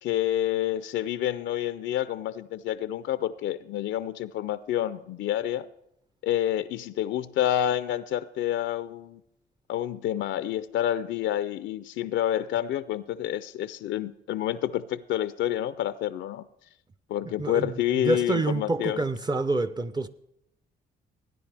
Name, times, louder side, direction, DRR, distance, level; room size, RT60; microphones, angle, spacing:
voice 1, 0.0-5.7 6.2-9.2 9.7-16.5 17.1-19.0, left 12 dB, 80° left, 0.4 m, -28 dB
voice 2, 17.4-20.1, right 2 dB, 20° right, 0.5 m, -27 dB
16.0 x 9.7 x 3.4 m
cardioid pair, 80°, 19 cm